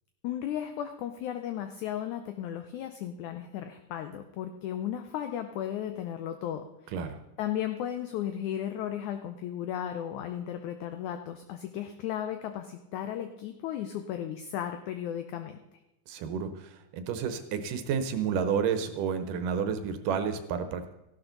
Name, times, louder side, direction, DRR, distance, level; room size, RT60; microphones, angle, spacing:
voice 1, 0.2-6.6 7.4-15.6, left 10 dB, 80° left, 8 dB, 1.8 m, -35 dB
voice 2, 6.9-7.2 16.1-20.9, right 7 dB, 75° right, 9 dB, 2.3 m, -31 dB
14.5 x 12.0 x 3.9 m, 0.92 s
omnidirectional pair, 4.2 m